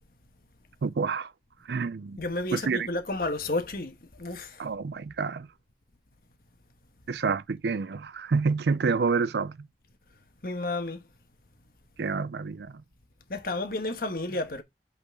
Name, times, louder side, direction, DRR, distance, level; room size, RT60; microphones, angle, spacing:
voice 1, 0.8-1.3 1.6-2.2 2.5-2.9 4.6-5.5 7.1-9.7 12.0-12.8, right 4 dB, 70° right, 0.4 m, -28 dB
voice 2, 2.2-4.7 10.4-11.0 13.3-14.6, left 2 dB, 55° left, 1.2 m, -31 dB
8.2 x 4.0 x 3.7 m
head